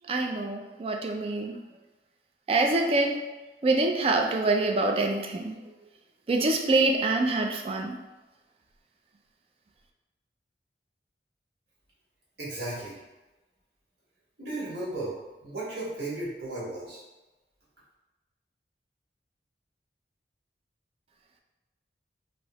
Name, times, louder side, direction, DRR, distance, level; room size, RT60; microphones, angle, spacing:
voice 1, 0.1-1.6 2.5-3.2 3.6-5.6 6.3-8.0, right 2 dB, 35° right, 2 dB, 0.3 m, -25 dB
voice 2, 12.4-13.0 14.4-17.0, right 2 dB, 70° right, -8 dB, 1.3 m, -35 dB
3.1 x 2.7 x 2.9 m, 1.1 s
head